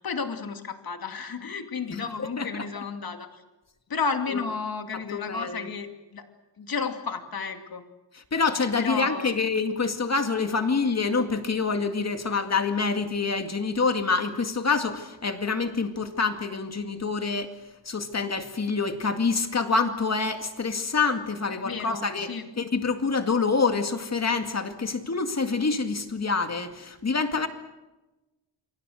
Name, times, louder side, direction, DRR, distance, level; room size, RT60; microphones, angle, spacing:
voice 1, 0.0-3.4 3.9-6.3 6.6-7.8 8.8-9.3 21.5-22.5, left 5 dB, 55° left, 6 dB, 2.5 m, -32 dB
voice 2, 1.9-2.6 4.3-4.4 5.1-5.7 8.3-17.5 17.9-22.3 22.6-27.5, left 4 dB, 35° left, 7 dB, 2.2 m, -26 dB
28.5 x 24.5 x 6.5 m, 1.1 s
wide cardioid pair, 160°, 43 cm